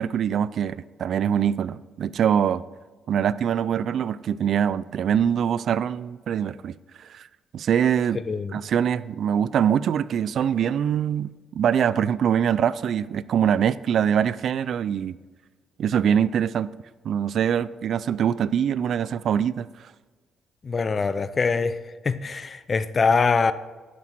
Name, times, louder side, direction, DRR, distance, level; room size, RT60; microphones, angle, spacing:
voice 1, 0.0-2.6 3.1-7.3 7.5-8.2 8.5-15.2 15.8-16.7 17.0-19.7, right 8 dB, 65° right, 0.3 m, -23 dB
voice 2, 8.3-8.6 20.6-21.8 22.0-23.5, left 4 dB, 35° left, 0.5 m, -23 dB
11.5 x 5.9 x 4.6 m
cardioid pair, 90°, 0 cm